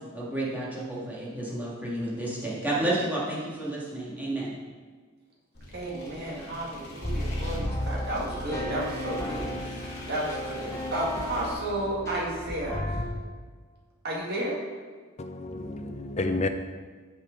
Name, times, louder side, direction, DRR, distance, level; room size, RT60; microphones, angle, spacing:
voice 1, 0.1-4.5, right 1 dB, 10° right, -6 dB, 1.7 m, -31 dB
sound 1, 5.5-11.5, left 1 dB, 50° left, 2.2 m, -43 dB
voice 2, 5.7-13.0 14.0-14.6, right 1 dB, 45° right, -4 dB, 2.0 m, -32 dB
sound 2, 7.0-13.0, left 1 dB, 15° left, 0.9 m, -33 dB
voice 3, 15.2-16.5, left 2 dB, 30° left, 7 dB, 0.5 m, -30 dB
6.4 x 6.1 x 5.2 m, 1.5 s
head